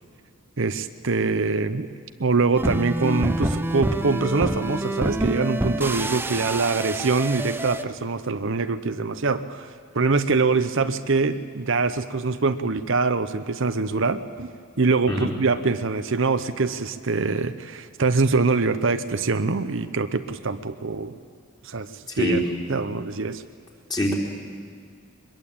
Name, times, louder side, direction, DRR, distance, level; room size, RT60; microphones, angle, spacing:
voice 1, 0.6-1.9 2.2-14.5 14.8-21.2 21.6-21.9 22.2-22.4 22.7-23.4, right 4 dB, 60° right, 10 dB, 0.8 m, -24 dB
sound 1, 2.6-7.8, right 1 dB, 10° right, 0.7 m, -27 dB
voice 2, 15.1-15.3 22.2-22.4 23.9-24.1, left 1 dB, 20° left, -2 dB, 3.9 m, -23 dB
23.5 x 21.5 x 8.7 m, 2.1 s
head